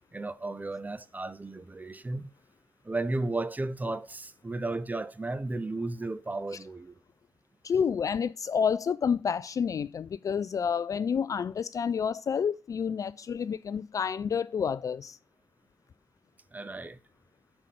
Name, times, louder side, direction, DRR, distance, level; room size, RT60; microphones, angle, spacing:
voice 1, 0.1-2.3 2.8-7.0 16.5-17.0, right 2 dB, 20° right, 0.6 m, -34 dB
voice 2, 7.6-15.2, left 7 dB, 40° left, 0.3 m, -29 dB
5.6 x 5.1 x 5.1 m
figure-of-eight pair, 40°, 9 cm